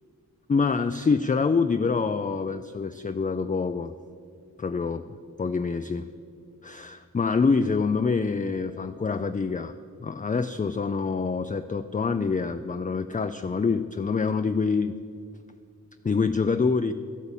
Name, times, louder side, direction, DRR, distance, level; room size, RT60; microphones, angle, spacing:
voice 1, 0.5-3.9 4.6-5.0 5.4-6.0 6.6-9.7 10.0-15.0 16.0-16.9, left 4 dB, 25° left, 9 dB, 0.4 m, -26 dB
12.5 x 8.3 x 7.2 m, 2.2 s
wide cardioid pair, 65°, 36 cm